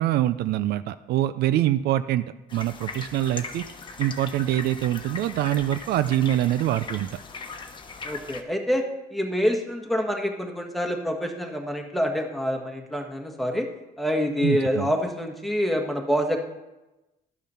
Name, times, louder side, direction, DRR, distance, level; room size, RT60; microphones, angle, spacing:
voice 1, 0.0-3.6 4.0-7.2 14.4-14.9, right 13 dB, 75° right, 13 dB, 0.5 m, -24 dB
sound 1, 2.5-8.4, left 4 dB, 30° left, 1.1 m, -39 dB
voice 2, 8.0-8.8 9.1-13.7 14.0-16.4, equal, ahead, 2 dB, 1.5 m, -26 dB
12.0 x 7.2 x 5.7 m, 1.0 s
cardioid pair, 120°, 17 cm